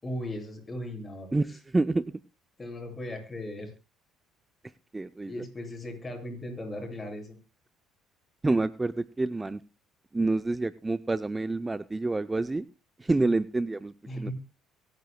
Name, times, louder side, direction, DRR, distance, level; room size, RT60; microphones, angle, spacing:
voice 1, 0.0-1.3 2.6-3.7 5.3-7.4 13.2-13.3 14.1-14.3, left 1 dB, 20° left, 2 dB, 7.5 m, -37 dB
voice 2, 1.3-2.1 4.9-5.4 8.4-9.6 10.1-12.7 13.0-14.3, right 2 dB, 15° right, 13 dB, 0.6 m, -28 dB
23.5 x 10.5 x 2.2 m, 0.28 s
supercardioid pair, 90°, 0 cm